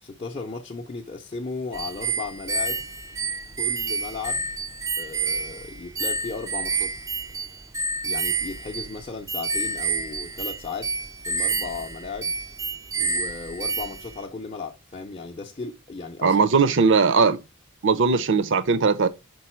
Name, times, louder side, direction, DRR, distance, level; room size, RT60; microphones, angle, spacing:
voice 1, 0.0-2.8 3.6-4.5 5.0-6.9 8.0-10.9 11.3-12.3 13.0-16.4 16.8-16.9, left 4 dB, 30° left, 0.6 m, -35 dB
sound 1, 1.7-14.2, right 4 dB, 15° right, 0.4 m, -29 dB
voice 2, 16.2-17.4 17.8-19.1, right 4 dB, 60° right, 0.6 m, -19 dB
5.4 x 4.1 x 4.3 m
head